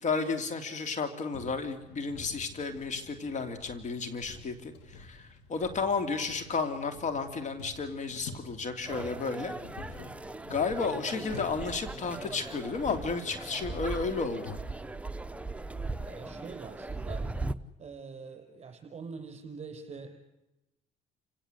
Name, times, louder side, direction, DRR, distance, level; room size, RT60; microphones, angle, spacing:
voice 1, 0.0-9.5 10.5-14.6, left 4 dB, 45° left, 8 dB, 2.9 m, -32 dB
sound 1, 1.3-14.6, left 3 dB, 90° left, 3.2 m, -48 dB
sound 2, 8.9-17.6, right 2 dB, 5° right, 0.9 m, -39 dB
voice 2, 16.1-17.3 17.8-20.2, right 5 dB, 40° right, 5 dB, 6.3 m, -44 dB
29.5 x 17.5 x 8.1 m, 0.93 s
cardioid pair, 110°, 17 cm